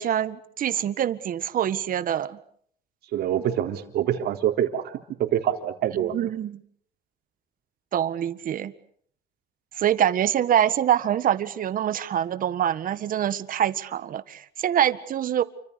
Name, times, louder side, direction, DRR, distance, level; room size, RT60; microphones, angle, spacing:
voice 1, 0.0-2.4 5.9-6.6 7.9-8.7 9.8-15.4, right 10 dB, 55° right, 14 dB, 1.7 m, -25 dB
voice 2, 3.1-4.9 5.2-6.1, right 10 dB, 70° right, 5 dB, 3.9 m, -25 dB
29.5 x 25.5 x 6.9 m, 0.63 s
cardioid pair, 110°, 17 cm